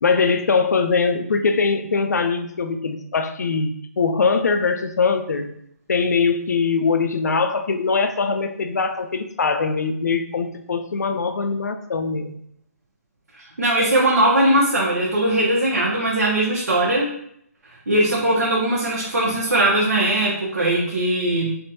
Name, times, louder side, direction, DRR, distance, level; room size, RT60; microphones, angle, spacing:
voice 1, 0.0-5.5 5.9-12.3, left 4 dB, 80° left, 7 dB, 0.4 m, -22 dB
voice 2, 13.3-17.1 17.9-21.5, right 1 dB, 85° right, -5 dB, 0.7 m, -20 dB
3.3 x 2.1 x 2.6 m, 0.70 s
hypercardioid pair, 145°, 9 cm